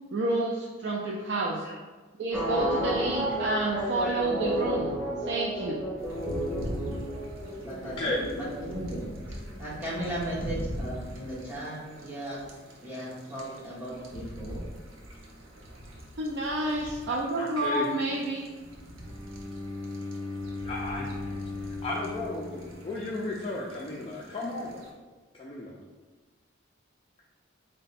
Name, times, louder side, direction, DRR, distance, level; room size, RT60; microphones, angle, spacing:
voice 1, 0.1-1.7 2.2-4.9 5.2-5.9 16.2-18.4, right 2 dB, 60° right, -2 dB, 0.4 m, -29 dB
sound 1, 2.3-10.8 11.1-11.2, equal, 5° left, 1.1 m, -32 dB
sound 2, 6.0-24.9, equal, 85° right, 0.7 m, -43 dB
voice 2, 7.6-12.4 12.8-14.6, right 1 dB, 10° right, -9 dB, 1.2 m, -37 dB
voice 3, 17.4-17.9 20.6-21.3 21.7-24.8 25.4-25.7, left 2 dB, 25° left, -5 dB, 0.4 m, -34 dB
Bowed string instrument, 19.0-23.1, left 2 dB, 40° right, 1.2 m, -37 dB
3.8 x 2.2 x 4.0 m, 1.3 s
head